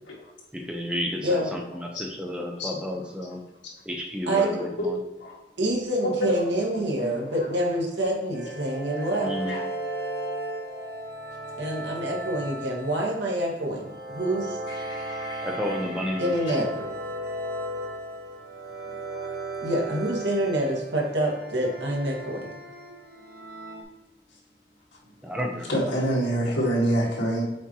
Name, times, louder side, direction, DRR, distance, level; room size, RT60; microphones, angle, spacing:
voice 1, 0.5-3.4 3.8-5.0 9.2-9.5 15.4-16.4 25.2-25.8, left 1 dB, 5° right, 1 dB, 0.8 m, -31 dB
voice 2, 1.2-1.6 4.3-4.6 5.6-9.3 11.6-14.6 16.2-16.9 19.6-22.5, right 1 dB, 80° right, -2 dB, 1.7 m, -27 dB
voice 3, 6.0-6.4 7.0-7.3 9.0-9.1 9.5-9.6 14.7-15.8 25.7-27.4, right 1 dB, 85° left, -4 dB, 2.0 m, -27 dB
sound 1, 8.3-23.8, right 1 dB, 55° right, 0.9 m, -36 dB
7.3 x 4.5 x 3.0 m, 1.0 s
head